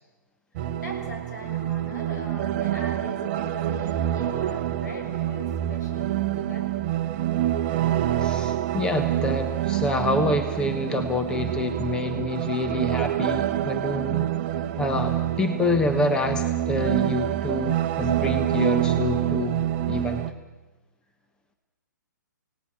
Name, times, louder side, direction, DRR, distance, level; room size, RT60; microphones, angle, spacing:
sound 1, 0.6-20.3, right 12 dB, 35° right, 1.1 m, -26 dB
voice 1, 0.8-6.7 7.1-7.2 7.7-7.8, left 1 dB, 65° left, 3 dB, 6.8 m, -41 dB
voice 2, 8.2-14.3 14.8-20.2, left 2 dB, 10° left, 6 dB, 1.1 m, -27 dB
27.5 x 18.0 x 7.6 m, 1.2 s
figure-of-eight pair, 130°, 10 cm